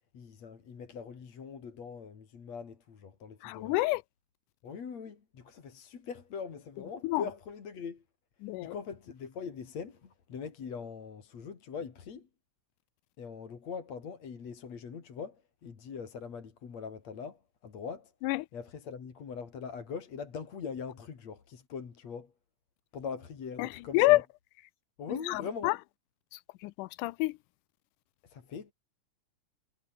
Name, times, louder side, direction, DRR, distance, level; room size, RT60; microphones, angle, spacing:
voice 1, 0.1-3.7 4.6-8.0 8.6-12.3 13.2-18.1 18.5-22.3 22.9-24.2 25.0-25.7 28.2-28.7, left 6 dB, 55° left, 4.1 m, -42 dB
voice 2, 3.4-4.0 7.0-7.2 8.4-8.8 18.2-18.5 23.6-24.2 25.2-25.8 26.3-27.4, left 19 dB, 80° left, 2.1 m, -28 dB
omnidirectional pair, 3.7 m